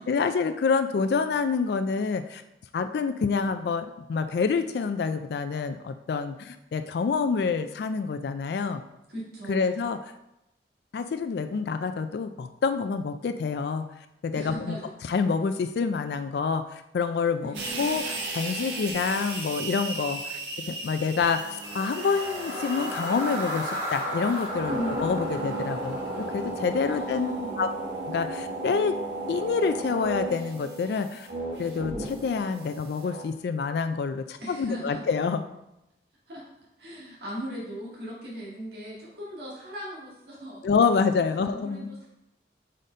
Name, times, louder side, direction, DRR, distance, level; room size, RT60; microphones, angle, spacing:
voice 1, 0.0-2.4 2.7-8.8 9.5-10.0 10.9-13.9 14.2-14.8 15.1-20.4 20.7-27.7 28.1-29.0 29.3-31.3 31.6-35.4 40.6-42.0, left 5 dB, 70° left, 9 dB, 0.3 m, -27 dB
voice 2, 9.1-9.9 14.3-14.9 17.4-17.9 24.7-25.1 25.3-25.6 26.8-27.6 34.4-35.1 36.3-36.5 36.8-40.7 41.4-42.1, equal, 65° right, -5 dB, 1.9 m, -38 dB
sound 1, 17.5-33.2, right 2 dB, 90° right, 1.2 m, -35 dB
sound 2, 21.5-27.7, equal, 20° right, 2.0 m, -36 dB
5.0 x 4.2 x 5.1 m, 0.88 s
head